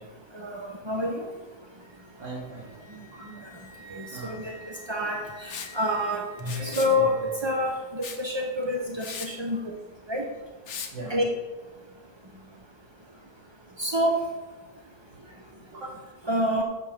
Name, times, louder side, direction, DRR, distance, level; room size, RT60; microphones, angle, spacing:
voice 1, 0.3-1.3 3.9-4.5 4.9-9.6 10.1-10.3 11.1-11.2 13.8-14.2 16.3-16.6, left 1 dB, 40° right, 1 dB, 0.3 m, -27 dB
Wind instrument woodwind instrument, 1.9-7.8, right 1 dB, 25° right, 0.9 m, -50 dB
voice 2, 2.2-3.4 4.1-4.5 10.9-11.2 15.7-16.0, right 3 dB, 80° right, -10 dB, 3.0 m, -40 dB
Liquid, 5.5-5.7 6.4-7.0 8.0-8.2 8.6-8.7 9.0-9.3 10.7-10.9, left 7 dB, 60° left, 1.3 m, -37 dB
8.6 x 7.0 x 5.2 m, 1.2 s
omnidirectional pair, 1.9 m